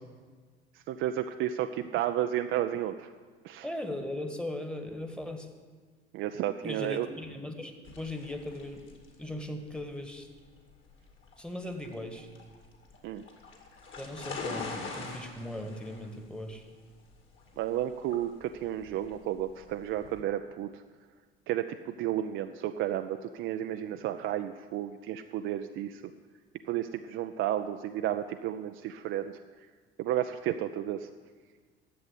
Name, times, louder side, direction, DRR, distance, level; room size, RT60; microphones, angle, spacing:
voice 1, 0.7-3.1 3.4-3.7 6.1-7.1 13.0-13.2 17.6-20.8 21.5-26.0 26.7-29.4 30.0-31.1, right 11 dB, 40° right, 7 dB, 0.5 m, -32 dB
voice 2, 3.6-5.5 6.6-8.9 9.2-10.3 11.4-12.3 14.0-16.6, left 1 dB, 5° left, 5 dB, 1.4 m, -38 dB
sound 1, 7.8-20.2, left 4 dB, 40° left, 2.3 m, -44 dB
11.0 x 7.8 x 8.2 m, 1.5 s
figure-of-eight pair, 65°, 30 cm